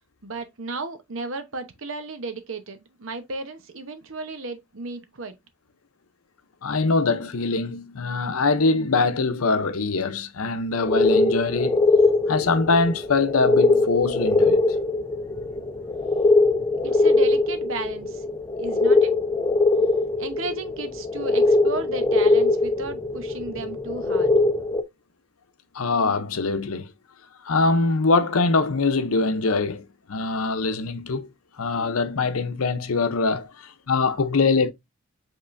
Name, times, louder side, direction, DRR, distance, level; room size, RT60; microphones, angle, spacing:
voice 1, 0.2-5.4 16.8-18.2 18.6-19.1 20.2-24.3, right 3 dB, 65° right, 0.9 m, -34 dB
voice 2, 6.6-11.8 12.3-14.6 25.7-26.9 27.4-31.3 31.6-34.7, left 3 dB, 80° left, 0.7 m, -23 dB
sound 1, 10.8-24.8, left 3 dB, 15° left, 0.5 m, -21 dB
5.5 x 3.6 x 2.5 m
head